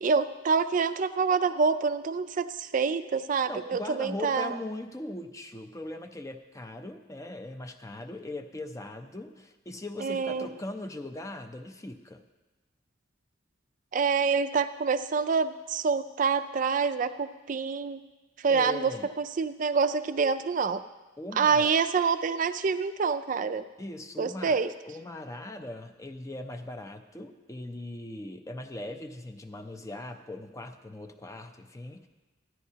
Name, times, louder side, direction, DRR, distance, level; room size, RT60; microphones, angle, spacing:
voice 1, 0.0-4.5 10.0-10.5 13.9-18.0 18.4-20.8 21.4-23.6 24.2-24.7, right 5 dB, 40° right, 11 dB, 0.4 m, -26 dB
voice 2, 3.5-12.2 18.5-19.1 21.2-21.7 23.8-32.1, left 2 dB, 15° left, 6 dB, 0.5 m, -40 dB
14.0 x 10.5 x 2.8 m, 1.2 s
head